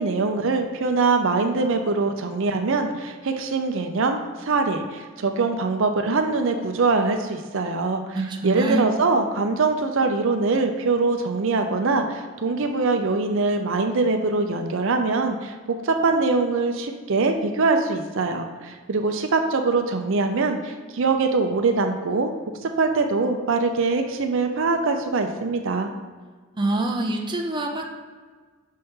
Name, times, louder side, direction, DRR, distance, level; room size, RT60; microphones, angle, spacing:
voice 1, 0.0-8.2 8.4-22.3 22.6-25.9, right 3 dB, 70° right, 5 dB, 0.6 m, -23 dB
voice 2, 8.1-8.9 26.5-27.9, right 2 dB, 25° right, 1 dB, 0.6 m, -25 dB
6.6 x 4.2 x 3.6 m, 1.5 s
head